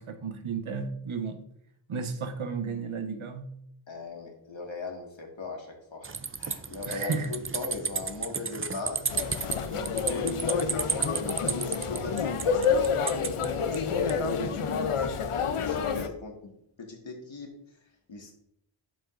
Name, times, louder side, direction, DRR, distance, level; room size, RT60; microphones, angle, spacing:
voice 1, 0.0-1.4 1.9-3.5 6.9-7.3, right 5 dB, 75° right, 1.0 m, -33 dB
voice 2, 3.9-9.1 9.7-16.5 16.8-18.3, left 3 dB, 65° left, 1.9 m, -39 dB
sound 1, 6.0-14.2, right 5 dB, 25° right, 0.5 m, -34 dB
sound 2, 9.1-16.1, left 6 dB, 85° left, 0.7 m, -28 dB
12.0 x 5.1 x 2.6 m
wide cardioid pair, 65°, 50 cm